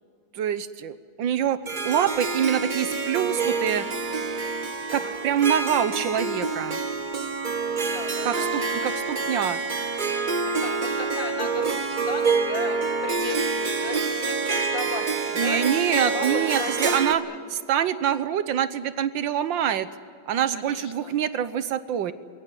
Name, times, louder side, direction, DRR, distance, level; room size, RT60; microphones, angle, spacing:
voice 1, 0.3-1.6 1.9-3.9 4.2-4.5 4.9-6.8 8.3-9.6 15.4-17.2 17.5-19.9 20.3-22.1, right 9 dB, 75° right, 13 dB, 1.6 m, -25 dB
Harp, 1.7-17.1, right 4 dB, 35° right, 0.9 m, -27 dB
voice 2, 7.7-8.9 10.4-17.5 20.5-21.2, left 4 dB, 70° left, 6 dB, 2.6 m, -37 dB
22.0 x 17.5 x 9.8 m, 2.2 s
omnidirectional pair, 2.1 m